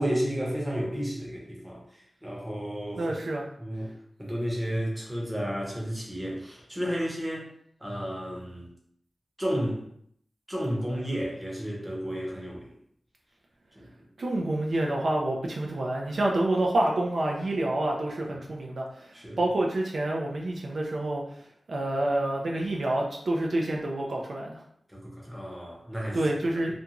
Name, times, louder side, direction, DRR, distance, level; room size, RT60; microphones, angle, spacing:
voice 1, 0.0-3.1 3.6-3.9 4.2-7.4 7.8-8.7 9.4-9.8 10.5-12.7 13.8-13.9 18.3-18.4 19.1-19.4 24.9-26.2, equal, 10° right, -3 dB, 0.7 m, -32 dB
voice 2, 3.0-3.5 14.2-21.2 21.7-24.6 26.1-26.8, right 1 dB, 65° right, -1 dB, 0.4 m, -28 dB
2.5 x 2.3 x 2.8 m, 0.69 s
wide cardioid pair, 105°, 0 cm